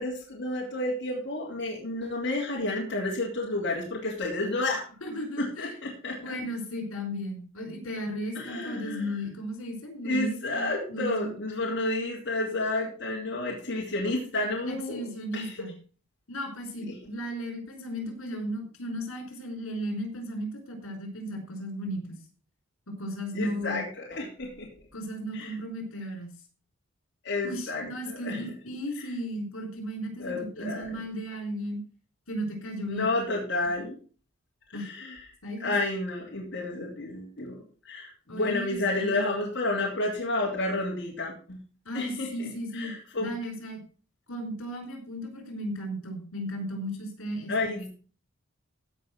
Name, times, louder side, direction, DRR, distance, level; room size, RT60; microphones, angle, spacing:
voice 1, 0.0-4.8 5.4-6.3 8.3-9.0 10.0-15.1 15.3-15.5 16.9-17.0 23.3-24.7 25.3-25.5 27.2-28.4 30.2-30.9 32.9-34.0 34.7-35.2 35.6-37.6 37.8-41.6 41.9-43.3 47.5-47.9, left 2 dB, 55° left, -4 dB, 3.1 m, -31 dB
voice 2, 5.0-5.8 6.2-11.3 14.7-15.8 16.3-22.2 23.0-23.8 24.9-26.3 27.4-31.8 32.3-33.0 34.7-34.9 35.4-35.7 38.3-39.3 41.8-42.9 43.2-43.8 44.3-47.8, equal, 80° left, 4 dB, 4.9 m, -35 dB
16.0 x 5.5 x 6.1 m, 0.39 s
head